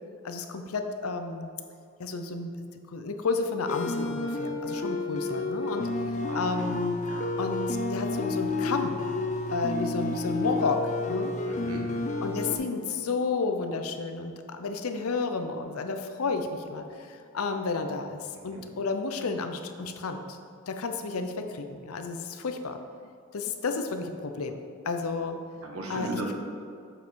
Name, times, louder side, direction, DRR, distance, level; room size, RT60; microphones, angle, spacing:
voice 1, 0.2-1.5 2.0-2.5 2.9-5.9 6.3-7.0 7.4-9.0 9.5-10.8 11.1-11.3 12.2-20.4 20.7-22.8 23.3-24.6 24.8-25.4 25.9-26.3, left 4 dB, 85° left, 7 dB, 0.6 m, -31 dB
sound 1, 3.7-12.6, left 2 dB, 35° left, 0.5 m, -30 dB
voice 2, 6.2-6.7 7.1-7.3 11.5-11.9 18.3-18.6 25.6-26.3, right 2 dB, 85° right, 0 dB, 1.3 m, -37 dB
7.6 x 5.3 x 4.6 m, 2.3 s
head